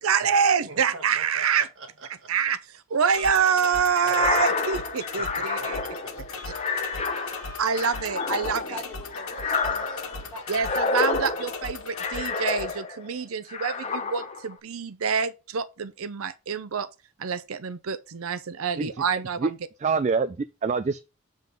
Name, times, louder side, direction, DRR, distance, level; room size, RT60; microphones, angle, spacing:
voice 1, 0.0-1.6 2.3-2.6 2.9-5.8 7.6-8.8 10.5-16.9 17.2-19.5, right 6 dB, 80° right, 0.6 m, -26 dB
voice 2, 0.6-2.3 4.0-4.3 5.2-8.2 8.5-8.6 9.7-9.9 10.2-10.6, right 2 dB, 65° right, 1.6 m, -46 dB
sound 1, 3.1-12.7, left 4 dB, 90° left, 1.5 m, -38 dB
sound 2, 4.0-13.1 13.5-14.5, left 4 dB, 30° left, 0.8 m, -29 dB
voice 3, 8.4-10.7, left 1 dB, 10° left, 4.8 m, -41 dB
voice 4, 19.8-21.0, right 5 dB, 35° right, 0.3 m, -25 dB
7.6 x 3.8 x 5.2 m
head